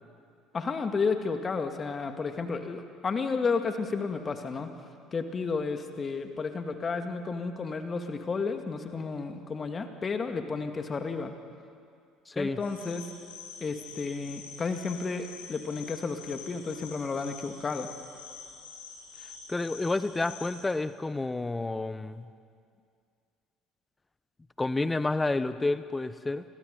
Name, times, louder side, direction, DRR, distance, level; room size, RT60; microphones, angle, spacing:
voice 1, 0.5-4.7 5.1-11.3 12.4-13.1 13.6-17.9, left 4 dB, 30° left, 6 dB, 2.2 m, -32 dB
voice 2, 12.3-12.6 19.5-22.3 24.6-26.4, left 2 dB, 15° left, 14 dB, 1.1 m, -30 dB
sound 1, 12.6-20.6, left 5 dB, 75° left, 7.4 m, -47 dB
29.5 x 23.0 x 5.5 m, 2.3 s
figure-of-eight pair, 55°, 0 cm